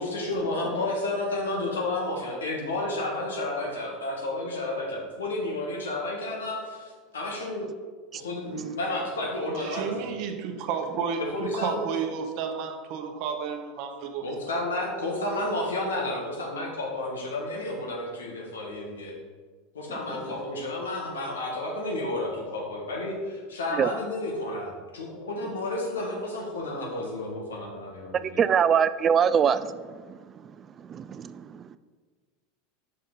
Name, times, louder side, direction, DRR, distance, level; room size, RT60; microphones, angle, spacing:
voice 1, 0.0-7.7 8.1-10.0 11.2-11.9 14.2-19.2 19.7-28.4, left 2 dB, 85° left, -1 dB, 1.4 m, -31 dB
voice 2, 9.6-14.4, right 6 dB, 55° right, 6 dB, 0.8 m, -32 dB
voice 3, 28.4-30.2 30.8-31.8, right 7 dB, 35° right, 14 dB, 0.3 m, -24 dB
5.7 x 5.2 x 3.9 m, 1.5 s
hypercardioid pair, 85°, 0 cm